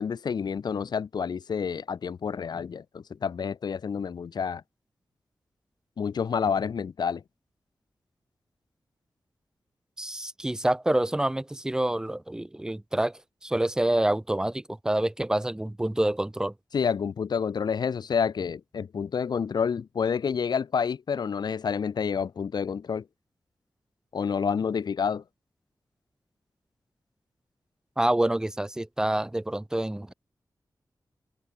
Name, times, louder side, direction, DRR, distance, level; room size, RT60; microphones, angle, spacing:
voice 1, 0.0-4.6 6.0-7.2 16.7-23.0 24.1-25.2, left 6 dB, 80° left, 1.2 m, -29 dB
voice 2, 10.0-16.5 28.0-30.1, right 1 dB, 10° right, 0.5 m, -27 dB
open air
wide cardioid pair, 160°, 7 cm